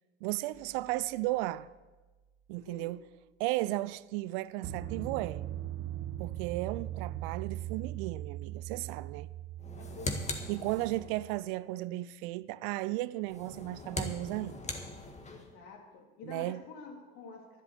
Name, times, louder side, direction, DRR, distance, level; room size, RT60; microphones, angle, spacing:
voice 1, 0.2-1.7 2.5-3.0 3.4-5.4 6.2-9.3 10.5-14.7 16.3-16.6, right 18 dB, 55° right, 0.5 m, -35 dB
sound 1, 0.5-0.8 4.6-11.4, right 12 dB, 40° right, 1.1 m, -40 dB
voice 2, 2.6-3.0 9.8-11.0 15.3-17.6, left 4 dB, 60° left, 3.3 m, -50 dB
sound 2, 9.6-11.2 13.2-15.5, left 2 dB, 20° left, 2.0 m, -40 dB
11.5 x 11.5 x 6.8 m
hypercardioid pair, 75°, 33 cm